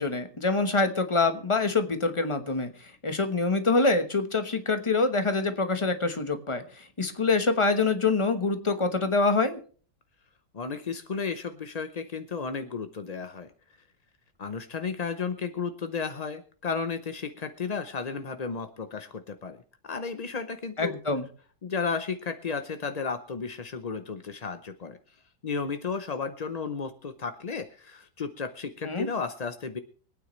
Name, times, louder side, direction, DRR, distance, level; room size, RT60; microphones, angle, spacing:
voice 1, 0.0-9.6 20.8-21.3 28.8-29.1, left 3 dB, 20° left, 8 dB, 1.0 m, -25 dB
voice 2, 10.5-13.5 14.4-19.6 19.8-21.0 21.6-25.0 25.4-29.8, left 5 dB, 55° left, 9 dB, 0.4 m, -33 dB
24.5 x 9.2 x 3.2 m, 0.42 s
omnidirectional pair, 1.8 m